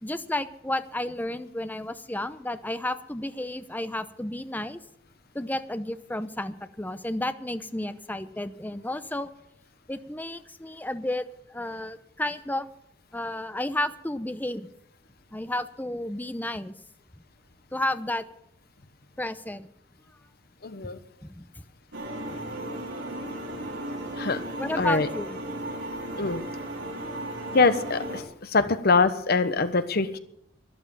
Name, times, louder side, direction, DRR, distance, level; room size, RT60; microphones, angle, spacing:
voice 1, 0.0-4.8 5.3-9.3 9.9-11.2 11.5-12.7 13.1-14.7 15.3-16.7 17.7-18.2 19.2-19.7 21.2-21.6 24.6-25.4, left 1 dB, 10° left, 11 dB, 0.7 m, -32 dB
voice 2, 20.6-21.0 24.2-24.4 24.8-25.1 26.2-26.5 27.5-30.2, left 4 dB, 55° left, 11 dB, 1.1 m, -23 dB
sound 1, 21.9-28.2, right 1 dB, 85° right, 3.1 m, -35 dB
12.5 x 11.5 x 7.1 m, 0.74 s
head